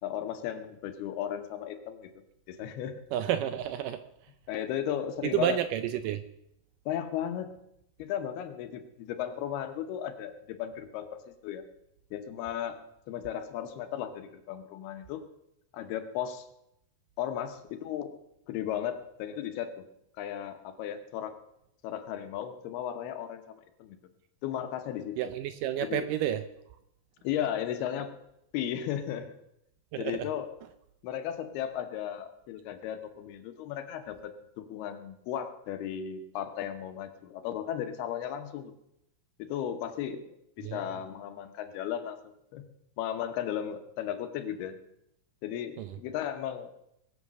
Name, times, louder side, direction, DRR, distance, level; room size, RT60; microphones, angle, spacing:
voice 1, 0.0-2.1 2.5-3.0 4.5-5.6 6.9-7.5 8.0-11.7 12.1-12.8 13.1-15.2 15.7-16.5 17.2-18.1 18.5-19.8 20.2-21.3 21.8-24.0 24.4-25.2 25.8-26.1 27.2-28.2 28.5-29.3 30.0-30.5 31.0-38.7 39.4-42.7 43.0-44.8 45.4-46.7, left 10 dB, 80° left, 8 dB, 3.0 m, -35 dB
voice 2, 3.1-4.0 5.2-6.2 25.2-26.4 29.9-30.2 40.6-40.8 45.8-45.9, right 11 dB, 85° right, 11 dB, 1.9 m, -30 dB
21.5 x 7.8 x 6.2 m, 0.80 s
omnidirectional pair, 4.5 m